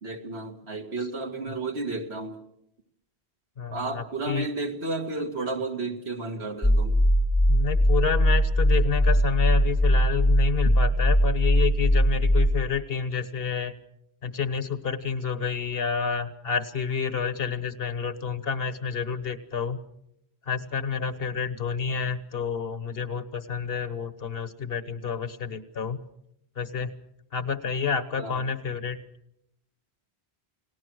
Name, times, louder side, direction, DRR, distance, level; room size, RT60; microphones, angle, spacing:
voice 1, 0.0-2.4 3.7-7.0 28.2-28.4, right 3 dB, 80° right, 4 dB, 2.3 m, -32 dB
voice 2, 3.6-4.5 7.5-13.7 14.2-19.8 20.5-26.0 26.6-27.0 27.3-29.0, left 6 dB, 65° left, 13 dB, 1.4 m, -29 dB
sound 1, 6.6-12.5, equal, 10° left, 0.9 m, -20 dB
29.5 x 19.0 x 6.4 m, 0.78 s
omnidirectional pair, 1.1 m